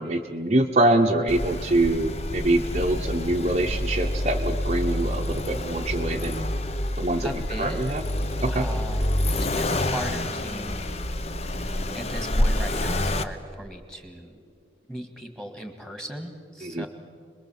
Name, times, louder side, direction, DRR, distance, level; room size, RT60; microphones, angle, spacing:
voice 1, 0.0-6.5 7.0-7.3 7.6-8.0 8.4-8.7 16.6-16.9, right 1 dB, 35° right, 3 dB, 0.9 m, -24 dB
Accelerating revving vroom, 1.3-13.2, left 1 dB, 35° left, 0.8 m, -27 dB
voice 2, 7.2-7.8 8.5-9.0 9.3-10.9 11.9-14.4 14.9-16.9, equal, 5° left, 6 dB, 2.0 m, -37 dB
26.0 x 21.5 x 7.4 m, 2.2 s
head